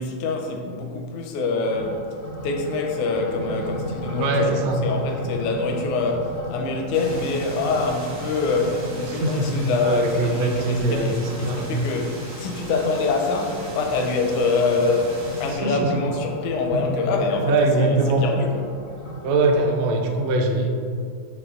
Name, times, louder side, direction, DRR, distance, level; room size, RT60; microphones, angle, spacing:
voice 1, 0.0-2.2 2.4-18.8, left 3 dB, 80° left, 2 dB, 2.0 m, -25 dB
sound 1, 1.6-19.8, left 1 dB, 50° left, 0.5 m, -36 dB
voice 2, 4.2-4.8 9.1-11.7 15.6-15.9 16.7-17.0 17.4-18.2 19.2-20.7, right 2 dB, 75° right, 2 dB, 1.6 m, -22 dB
sound 2, 6.9-15.6, right 1 dB, 55° right, 0.8 m, -39 dB
6.9 x 3.7 x 3.6 m, 2.3 s
omnidirectional pair, 3.6 m